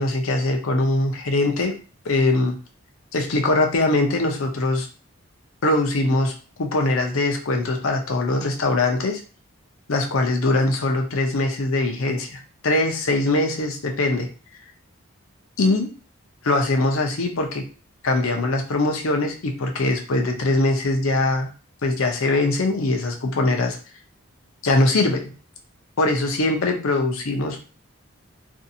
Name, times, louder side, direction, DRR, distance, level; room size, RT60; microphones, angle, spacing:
voice 1, 0.0-1.7 2.0-2.6 3.1-4.9 5.6-9.2 9.9-14.3 15.6-15.9 16.4-17.6 18.0-21.5 21.8-23.8 24.6-25.3 26.0-27.6, left 2 dB, 75° left, 3 dB, 0.6 m, -22 dB
2.6 x 2.4 x 2.6 m, 0.35 s
head